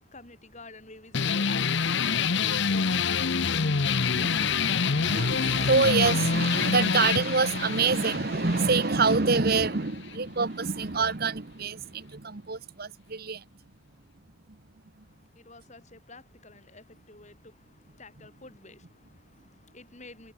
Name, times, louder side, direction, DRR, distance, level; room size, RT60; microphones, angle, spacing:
voice 1, 0.0-4.9 15.0-20.3, left 3 dB, 35° left, 7.1 m, -51 dB
sound 1, 1.1-10.2, left 5 dB, 55° left, 0.9 m, -27 dB
voice 2, 4.0-13.4 14.5-14.6, right 4 dB, 45° right, 1.1 m, -26 dB
head